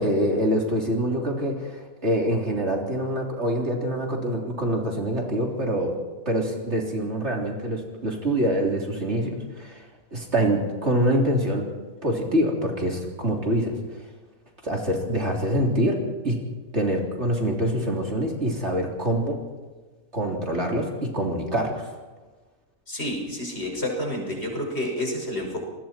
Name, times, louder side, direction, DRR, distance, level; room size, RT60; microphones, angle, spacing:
voice 1, 0.0-5.9 6.3-9.8 10.1-11.7 12.0-13.8 14.6-16.0 16.2-16.4 16.7-19.4 20.1-21.8, right 1 dB, 50° right, 0 dB, 3.8 m, -25 dB
voice 2, 22.9-25.6, left 1 dB, 45° left, 1 dB, 6.1 m, -29 dB
28.5 x 20.5 x 4.5 m, 1.3 s
omnidirectional pair, 1.5 m